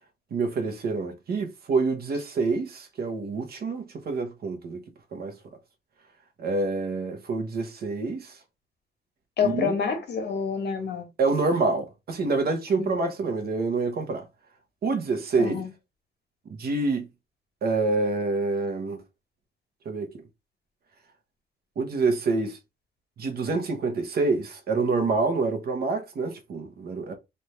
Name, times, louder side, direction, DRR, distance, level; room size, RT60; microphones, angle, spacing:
voice 1, 0.3-4.8 5.1-5.4 6.4-8.4 9.4-9.7 11.2-14.2 14.8-15.6 16.5-17.1 17.6-19.0 19.8-20.1 21.8-22.6 23.2-27.1, right 3 dB, 65° right, 1.0 m, -27 dB
voice 2, 9.4-11.1 12.8-12.9 15.4-15.7, left 6 dB, 70° left, 1.3 m, -27 dB
3.3 x 2.6 x 4.3 m
wide cardioid pair, 140°, 18 cm